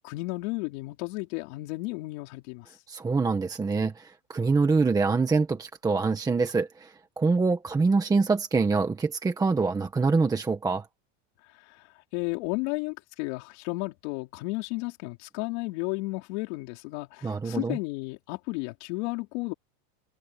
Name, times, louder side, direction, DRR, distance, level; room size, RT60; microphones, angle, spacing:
voice 1, 0.0-2.8 11.4-19.5, left 24 dB, 55° left, 4.5 m, -33 dB
voice 2, 2.9-10.9 17.2-17.8, right 4 dB, 10° right, 1.4 m, -25 dB
supercardioid pair, 165°, 40 cm